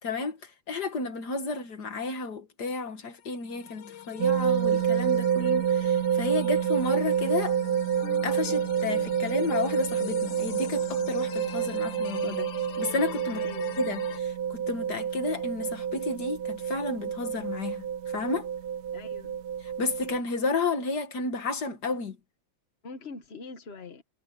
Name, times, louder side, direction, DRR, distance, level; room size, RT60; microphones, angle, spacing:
voice 1, 0.0-7.6 8.2-12.5 12.8-13.5 13.8-18.5 19.6-22.2, left 4 dB, 55° left, 2.2 m, -32 dB
sound 1, 3.2-14.2, left 10 dB, 75° left, 1.6 m, -42 dB
sound 2, 4.2-20.2, right 8 dB, 65° right, 1.2 m, -28 dB
voice 2, 13.3-13.8 18.9-19.4 22.8-24.0, left 3 dB, 40° left, 1.2 m, -43 dB
omnidirectional pair, 2.1 m